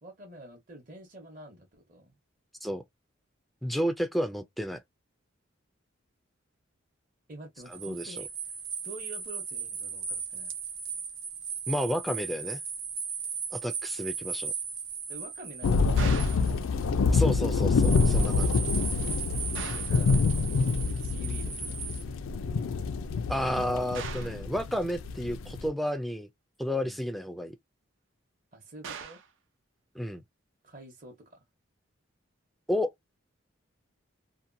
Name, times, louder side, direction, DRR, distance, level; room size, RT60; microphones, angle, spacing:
voice 1, 0.0-2.1 7.3-8.6 8.8-10.0 10.3-10.5 15.1-16.7 19.7-20.2 21.0-22.2 26.7-27.1 28.5-29.2 30.6-31.4, right 1 dB, 40° right, 0.8 m, -48 dB
voice 2, 3.6-4.8 7.7-8.2 11.7-12.6 13.5-14.5 17.1-18.6 23.3-26.3 26.6-27.6 30.0-30.2 32.7-32.9, equal, ahead, 0.3 m, -31 dB
sound 1, 7.6-16.8 17.7-22.0, right 6 dB, 85° right, 0.9 m, -37 dB
sound 2, 15.6-25.7, left 4 dB, 85° left, 0.4 m, -26 dB
sound 3, 16.0-16.5 19.5-20.0 23.9-24.4 28.8-29.3, right 6 dB, 70° right, 0.5 m, -40 dB
2.8 x 2.2 x 2.5 m
head